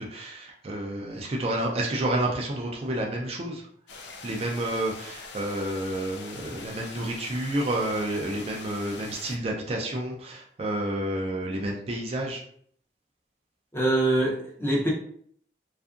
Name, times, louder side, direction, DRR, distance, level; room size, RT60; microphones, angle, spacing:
voice 1, 0.0-3.6 4.2-12.4, right 1 dB, 35° right, -1 dB, 0.4 m, -30 dB
sound 1, 3.9-9.4, left 4 dB, 75° left, 0.4 m, -43 dB
voice 2, 13.7-14.9, right 1 dB, 15° left, -3 dB, 0.6 m, -24 dB
2.6 x 2.4 x 2.4 m, 0.63 s
head